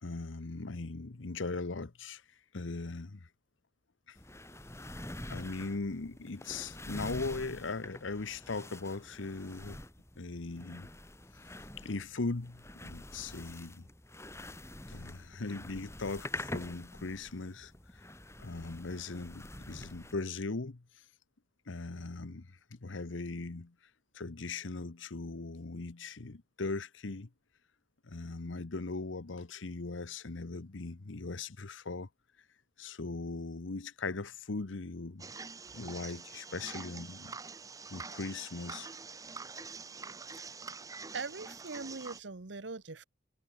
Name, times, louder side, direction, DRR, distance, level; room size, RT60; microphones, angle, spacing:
voice 1, 0.0-2.2 2.5-3.3 4.1-4.2 5.3-9.8 10.2-10.9 11.8-13.8 14.9-17.7 18.4-20.8 21.7-23.7 24.1-27.3 28.0-32.1 32.8-35.3 35.7-37.3 37.9-38.9, left 3 dB, 85° left, 1.0 m, -39 dB
sound 1, 4.2-20.1, left 1 dB, 15° left, 3.1 m, -46 dB
sound 2, 35.2-42.2, right 4 dB, 20° right, 0.8 m, -46 dB
voice 2, 41.1-43.0, right 4 dB, 70° right, 1.1 m, -41 dB
head